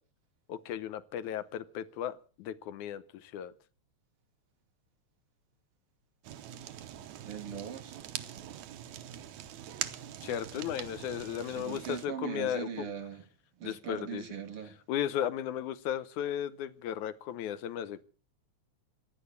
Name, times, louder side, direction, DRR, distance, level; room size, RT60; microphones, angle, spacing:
voice 1, 0.5-3.5 10.2-12.9 13.6-14.2 14.9-18.0, left 10 dB, 90° left, 2.4 m, -35 dB
Fire, 6.2-12.1, right 11 dB, 75° right, 2.4 m, -43 dB
voice 2, 7.2-8.0 11.6-13.2 13.6-14.8, right 8 dB, 55° right, 2.3 m, -40 dB
16.5 x 10.0 x 8.5 m
omnidirectional pair, 3.3 m